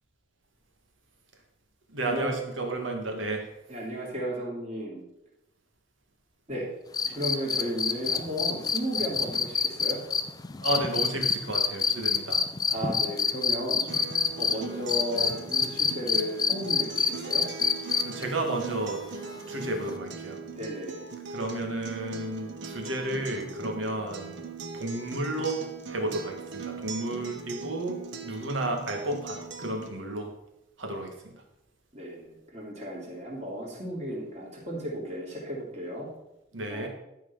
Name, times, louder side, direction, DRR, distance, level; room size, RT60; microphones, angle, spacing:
voice 1, 1.9-3.5 7.1-7.2 10.6-12.5 18.0-19.0 19.5-20.4 21.3-24.4 24.7-30.3 30.8-31.4 36.5-36.9, right 2 dB, 90° right, 3 dB, 2.0 m, -32 dB
voice 2, 3.7-5.0 6.5-6.7 7.1-10.0 12.7-13.8 14.4-17.5 20.5-21.1 31.9-36.1 36.7-36.9, equal, 35° right, -4 dB, 3.1 m, -34 dB
sound 1, 6.9-14.5 14.9-18.2 19.9-20.0, left 6 dB, 20° left, 0.4 m, -26 dB
Acoustic guitar, 13.9-29.9, right 4 dB, 70° right, 1.1 m, -40 dB
12.0 x 4.8 x 5.6 m, 0.87 s
head